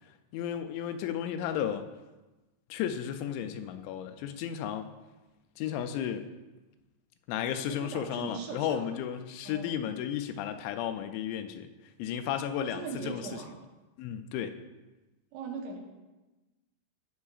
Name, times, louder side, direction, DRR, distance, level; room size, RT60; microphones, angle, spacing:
voice 1, 0.3-1.9 2.7-4.9 5.6-6.3 7.3-11.7 12.0-13.2 14.0-14.6, left 9 dB, 90° left, 8 dB, 2.9 m, -33 dB
voice 2, 7.7-9.0 9.4-9.9 12.6-13.6 15.3-15.8, right 5 dB, 80° right, 1 dB, 3.2 m, -40 dB
14.5 x 5.6 x 2.4 m, 1.1 s
omnidirectional pair, 5.1 m